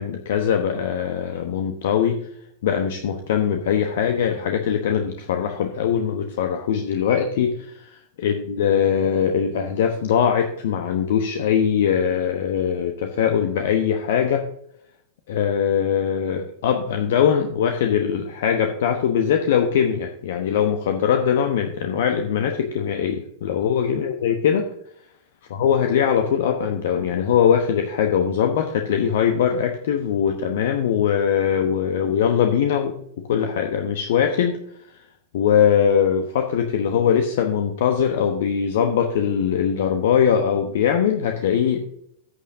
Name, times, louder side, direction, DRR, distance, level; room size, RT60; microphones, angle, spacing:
voice 1, 0.0-2.2 2.6-7.8 8.2-14.4 15.3-24.7 25.5-34.6 35.3-41.8, left 8 dB, 55° left, 5 dB, 1.0 m, -21 dB
14.5 x 8.8 x 2.7 m, 0.70 s
figure-of-eight pair, 90°, 0 cm